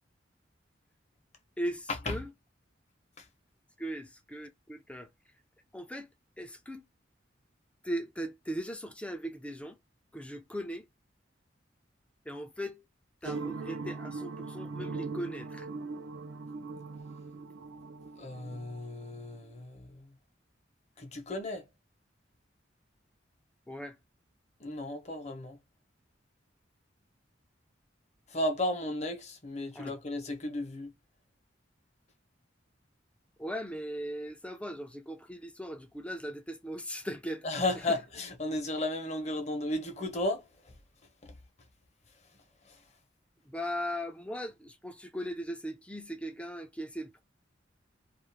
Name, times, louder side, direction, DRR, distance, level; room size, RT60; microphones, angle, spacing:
voice 1, 1.6-2.3 3.8-5.1 5.7-6.1 6.4-6.8 7.8-9.8 10.1-10.9 12.3-12.8 13.2-15.7 23.7-24.0 29.7-29.9 33.4-37.4 37.8-38.0 43.5-47.2, equal, 5° left, 0.4 m, -38 dB
sound 1, 13.2-19.5, right 4 dB, 75° right, 0.5 m, -40 dB
voice 2, 18.2-20.1 21.0-21.7 24.6-25.6 28.3-30.9 37.4-40.4, left 1 dB, 35° left, 0.7 m, -34 dB
2.4 x 2.4 x 3.2 m
head